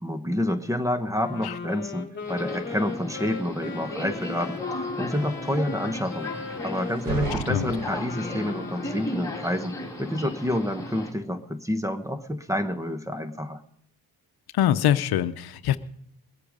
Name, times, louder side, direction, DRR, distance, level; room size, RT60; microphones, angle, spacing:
voice 1, 0.0-6.3 6.6-13.6, left 1 dB, 10° right, 10 dB, 1.0 m, -28 dB
Wind instrument woodwind instrument, 1.1-9.4, left 5 dB, 30° left, 1.9 m, -37 dB
Subway metro underground, 2.2-11.1, left 1 dB, 10° left, 3.2 m, -36 dB
sound 1, 6.8-8.5, right 10 dB, 60° right, 0.8 m, -36 dB
voice 2, 14.5-15.8, left 11 dB, 70° left, 12 dB, 0.8 m, -23 dB
21.0 x 8.4 x 5.2 m, 0.71 s
cardioid pair, 105°, 38 cm